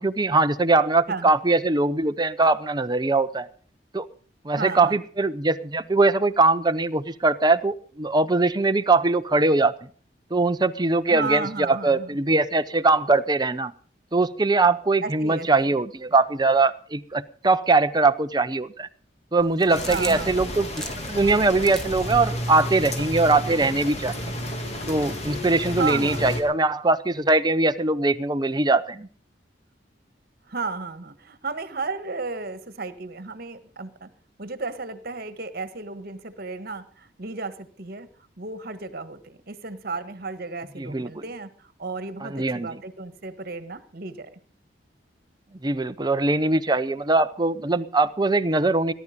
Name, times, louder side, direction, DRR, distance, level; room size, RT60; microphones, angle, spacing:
voice 1, 0.0-3.5 3.9-4.1 4.4-9.9 10.3-13.7 14.1-18.9 19.3-24.3 24.9-29.1 40.8-41.1 42.2-42.8 45.6-48.9, right 3 dB, 25° right, 10 dB, 0.8 m, -21 dB
voice 2, 4.6-5.0 11.1-12.2 15.0-15.7 19.9-20.5 25.8-26.2 30.5-34.1 34.4-38.1 38.4-44.4, right 4 dB, 55° right, 12 dB, 1.6 m, -33 dB
sound 1, 19.4-22.3, equal, 5° left, 1.8 m, -38 dB
sound 2, 19.7-26.4, left 1 dB, 40° left, 2.8 m, -32 dB
18.5 x 11.5 x 5.3 m, 0.43 s
head